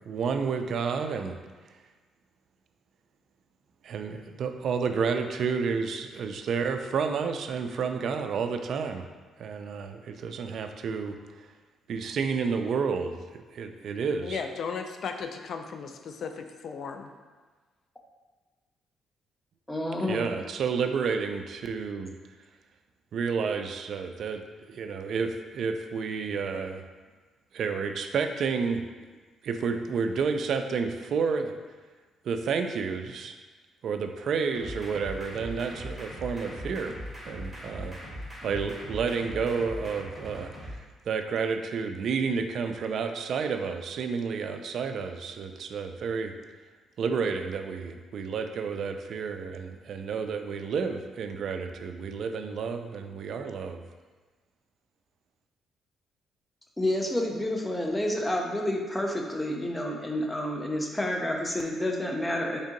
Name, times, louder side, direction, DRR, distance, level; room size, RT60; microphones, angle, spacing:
voice 1, 0.1-1.4 3.8-9.0 9.4-11.2 11.9-13.2 13.5-14.4 20.1-22.1 23.1-24.4 24.7-26.8 27.5-28.8 29.4-31.5 32.3-33.3 33.8-37.0 37.3-38.0 38.4-40.5 41.1-46.3 47.0-53.8, right 5 dB, 65° right, 7 dB, 0.3 m, -30 dB
voice 2, 14.2-17.1, left 5 dB, 60° left, 6 dB, 0.3 m, -36 dB
voice 3, 19.7-20.4 56.8-62.6, left 1 dB, 10° left, 1 dB, 0.6 m, -29 dB
sound 1, 34.5-40.7, equal, 20° right, 1.0 m, -40 dB
3.5 x 2.7 x 3.8 m, 1.4 s
cardioid pair, 90°, 0 cm